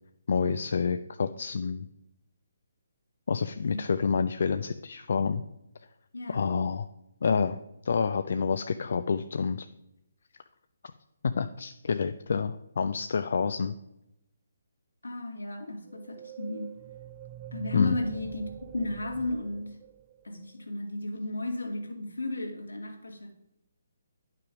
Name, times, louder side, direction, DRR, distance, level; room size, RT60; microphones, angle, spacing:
voice 1, 0.3-1.9 3.3-5.4 6.3-6.9 7.2-9.7 11.2-13.7 17.7-18.0, left 5 dB, 60° left, 10 dB, 0.4 m, -28 dB
voice 2, 6.1-6.5 15.0-16.7 17.5-19.8 20.2-23.3, left 2 dB, 80° left, 2 dB, 2.1 m, -34 dB
sound 1, 15.9-20.5, right 11 dB, 30° right, 0.4 m, -45 dB
10.5 x 5.8 x 5.0 m, 0.86 s
figure-of-eight pair, 140°, 0 cm